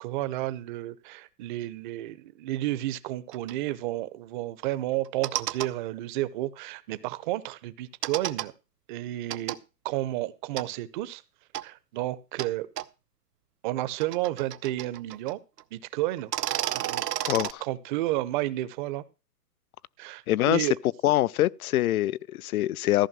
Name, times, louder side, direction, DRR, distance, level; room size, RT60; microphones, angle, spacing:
voice 1, 0.0-8.5 8.9-9.6 9.8-11.2 11.6-12.7 13.6-15.4 15.7-17.0 17.6-19.0 20.0-20.7, right 16 dB, 30° right, 0.8 m, -31 dB
sound 1, 3.3-3.5 5.0-5.7 8.0-8.5 9.3-9.6 10.6-10.7 11.5-11.6 12.4-12.5 12.8-12.9 13.8-15.3 15.6-15.7 16.2-17.5, right 12 dB, 80° right, 0.9 m, -31 dB
voice 2, 17.2-17.6 20.3-20.7 21.0-23.1, left 14 dB, 65° left, 0.6 m, -24 dB
14.5 x 5.3 x 7.4 m
hypercardioid pair, 145°, 47 cm